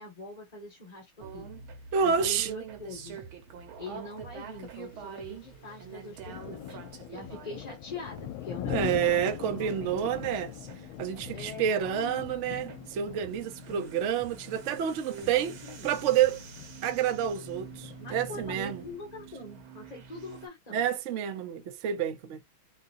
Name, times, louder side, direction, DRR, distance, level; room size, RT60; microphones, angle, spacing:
voice 1, 0.0-1.5 1.9-3.2 3.8-6.8 7.1-9.9 11.3-12.4 13.7-13.9 15.1-15.9 18.0-20.9, left 3 dB, 25° left, 1.2 m, -43 dB
sound 1, 1.2-20.5, right 6 dB, 85° right, 1.9 m, -46 dB
voice 2, 1.9-2.5 8.7-10.5 11.0-15.5 15.8-16.4 16.8-18.8 20.7-22.4, right 8 dB, 70° right, 0.7 m, -29 dB
sound 2, 4.5-4.7 5.4-5.6 6.0-19.0, left 13 dB, 80° left, 1.4 m, -42 dB
3.9 x 3.9 x 2.5 m
omnidirectional pair, 2.2 m